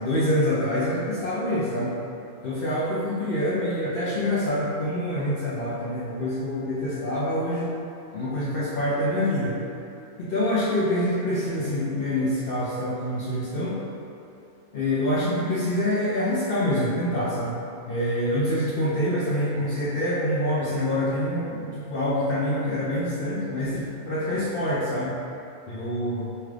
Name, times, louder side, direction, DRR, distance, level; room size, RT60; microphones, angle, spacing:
voice 1, 0.0-2.0 2.4-7.7 8.1-9.6 10.2-13.8 14.7-17.6 17.9-25.2 25.7-26.3, left 1 dB, 60° left, -8 dB, 0.6 m, -26 dB
5.6 x 2.4 x 3.2 m, 2.7 s
omnidirectional pair, 1.5 m